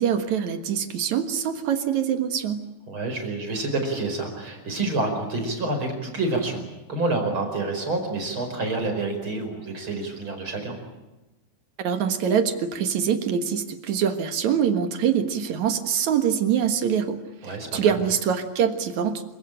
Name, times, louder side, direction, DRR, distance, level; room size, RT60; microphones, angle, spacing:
voice 1, 0.0-2.6 11.8-17.2 17.4-19.3, right 8 dB, 60° right, 8 dB, 2.1 m, -24 dB
voice 2, 2.9-6.6 6.9-10.8 17.4-18.0, right 2 dB, 30° right, 4 dB, 5.3 m, -28 dB
27.5 x 16.5 x 10.0 m, 1.1 s
omnidirectional pair, 5.2 m